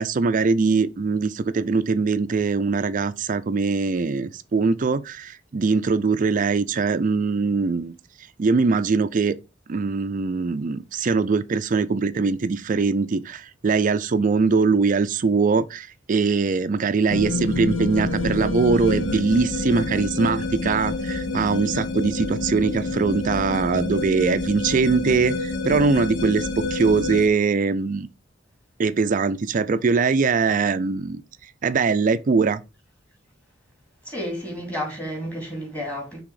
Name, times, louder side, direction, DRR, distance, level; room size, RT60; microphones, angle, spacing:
voice 1, 0.0-7.9 8.4-9.4 9.7-28.1 28.8-31.2 31.6-32.6, right 4 dB, 45° right, 0.4 m, -22 dB
sound 1, 17.1-27.3, left 2 dB, 80° left, 0.9 m, -28 dB
voice 2, 34.0-36.2, equal, 10° left, 2.6 m, -31 dB
6.0 x 3.5 x 4.7 m
head